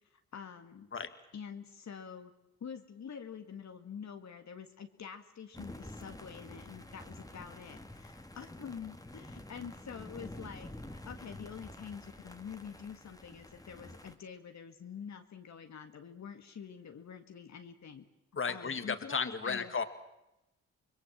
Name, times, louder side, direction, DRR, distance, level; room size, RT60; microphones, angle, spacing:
voice 1, 0.1-0.9 1.3-2.3 2.6-18.1 18.5-19.8, left 7 dB, 60° left, 6 dB, 1.9 m, -47 dB
sound 1, 5.5-14.2, left 1 dB, 10° left, 2.3 m, -49 dB
voice 2, 18.4-19.8, left 5 dB, 40° left, 10 dB, 2.1 m, -34 dB
26.0 x 21.0 x 7.4 m, 0.89 s
supercardioid pair, 55°, 31 cm